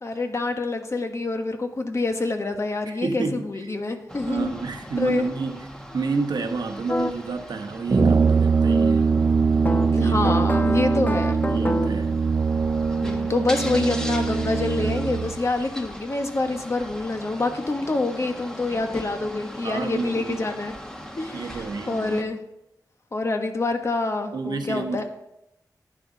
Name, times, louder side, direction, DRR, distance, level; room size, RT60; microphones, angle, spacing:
voice 1, 0.0-4.5 5.0-5.3 9.9-11.4 13.0-20.7 21.2-22.4 23.1-25.0, left 2 dB, 40° left, 5 dB, 1.3 m, -26 dB
voice 2, 2.9-3.7 4.3-5.7 5.9-9.1 10.0-10.9 11.2-12.2 19.6-20.5 21.3-22.3 24.3-25.0, right 4 dB, 85° right, 5 dB, 1.2 m, -30 dB
sound 1, 4.1-22.2, equal, 10° left, 1.4 m, -39 dB
sound 2, 6.9-7.1 9.6-12.1, left 2 dB, 25° left, 0.5 m, -28 dB
Brass instrument, 7.9-15.4, right 4 dB, 40° right, 0.4 m, -22 dB
11.0 x 10.0 x 4.0 m, 0.86 s
wide cardioid pair, 95°, 7 cm